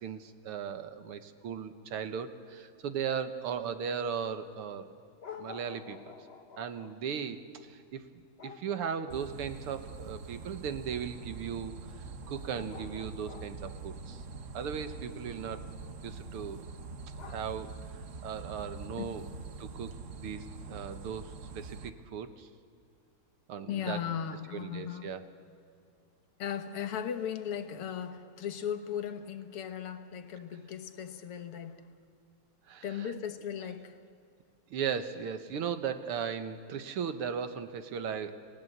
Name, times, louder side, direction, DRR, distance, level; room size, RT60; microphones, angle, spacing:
voice 1, 0.0-4.9 5.4-6.2 6.6-11.8 12.3-14.3 14.5-15.6 16.0-16.7 17.2-17.7 18.2-19.3 19.6-22.5 23.5-24.0 24.5-25.3 32.7-33.1 34.7-38.3, right 7 dB, 80° right, 2.1 m, -37 dB
sound 1, 4.6-4.7 5.2-7.2 8.4-9.6 11.6-11.7 12.4-13.7 15.8-16.2 17.2-17.7 18.6-18.7, left 6 dB, 45° left, 0.8 m, -49 dB
sound 2, 9.1-21.9, right 4 dB, 45° right, 1.1 m, -44 dB
voice 2, 19.0-19.3 23.7-25.1 26.4-31.9 32.8-34.0, left 8 dB, 80° left, 2.1 m, -37 dB
29.5 x 18.5 x 8.0 m
omnidirectional pair, 2.4 m